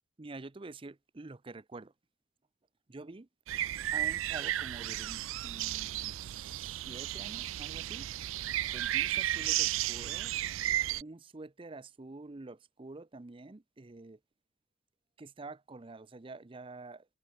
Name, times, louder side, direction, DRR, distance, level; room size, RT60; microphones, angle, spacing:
voice 1, 0.2-1.9 2.9-3.3 3.9-8.1 8.7-10.3 11.0-14.2 15.2-17.1, right 3 dB, 25° right, 0.6 m, -47 dB
sound 1, 3.5-11.0, right 13 dB, 90° right, 0.4 m, -33 dB
head